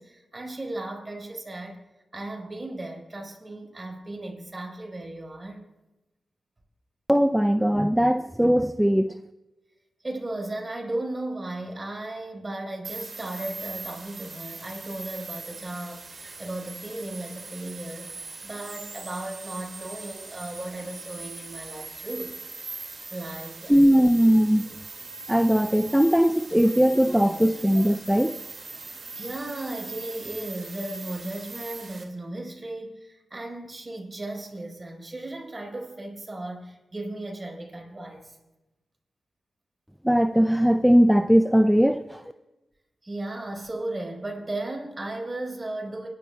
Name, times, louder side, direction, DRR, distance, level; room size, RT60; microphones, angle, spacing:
voice 1, 0.0-1.8 2.1-5.6 10.0-22.6 23.1-23.8 29.1-38.4 43.0-46.1, right 2 dB, 35° right, 0 dB, 4.5 m, -36 dB
voice 2, 7.1-9.1 23.7-24.7 25.3-28.3 40.0-42.2, equal, 5° right, 9 dB, 0.4 m, -20 dB
sound 1, 12.8-32.0, right 3 dB, 55° right, 2.2 m, -41 dB
29.0 x 11.5 x 2.3 m, 1.0 s
cardioid pair, 45°, 0 cm